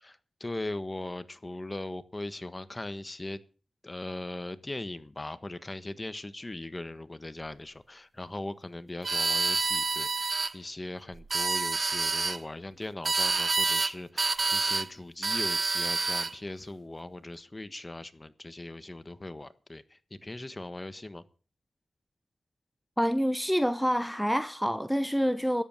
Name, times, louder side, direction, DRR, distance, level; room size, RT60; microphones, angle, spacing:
voice 1, 0.0-3.4 3.8-21.2, left 2 dB, 25° left, 1.4 m, -39 dB
sound 1, 9.0-10.5 11.2-12.4 13.1-13.9 14.2-14.9 15.2-16.3, right 3 dB, 45° right, 0.7 m, -28 dB
voice 2, 23.0-25.6, equal, ahead, 0.9 m, -27 dB
13.0 x 10.5 x 6.7 m
cardioid pair, 55°, 0 cm